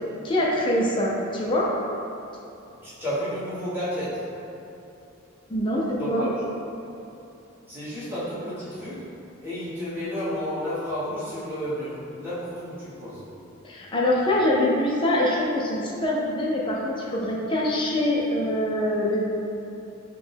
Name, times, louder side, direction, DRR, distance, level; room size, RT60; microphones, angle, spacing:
voice 1, 0.2-1.7 5.5-6.3 13.6-19.2, left 1 dB, 25° left, -4 dB, 0.4 m, -24 dB
voice 2, 2.6-4.3 5.9-6.4 7.7-9.1 9.4-13.3, equal, 10° right, -12 dB, 1.1 m, -31 dB
4.9 x 2.2 x 3.3 m, 2.8 s
head